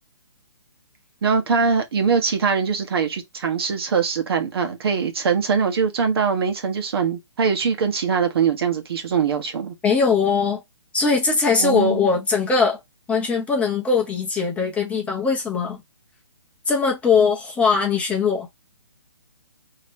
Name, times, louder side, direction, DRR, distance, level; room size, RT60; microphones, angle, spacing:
voice 1, 1.2-9.7 11.6-12.0, right 6 dB, 55° right, 1.1 m, -22 dB
voice 2, 9.8-10.6 10.9-12.8 13.1-15.8 16.7-18.5, left 5 dB, 10° left, 0.8 m, -20 dB
4.1 x 2.8 x 3.4 m
figure-of-eight pair, 140°, 15 cm